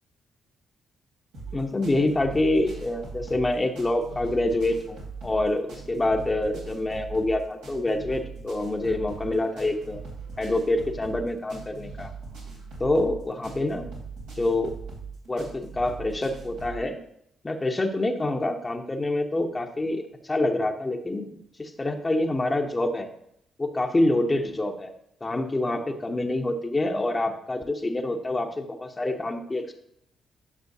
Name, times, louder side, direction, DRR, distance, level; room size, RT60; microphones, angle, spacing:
sound 1, 1.3-16.8, right 4 dB, 85° right, 2.9 m, -40 dB
voice 1, 1.5-10.1 10.4-12.1 12.8-13.9 14.4-14.7 15.3-17.0 17.4-21.3 21.6-23.1 23.6-24.9 25.2-29.7, left 2 dB, 25° left, 4 dB, 1.0 m, -26 dB
11.0 x 6.1 x 2.8 m, 0.74 s
hypercardioid pair, 45°, 0 cm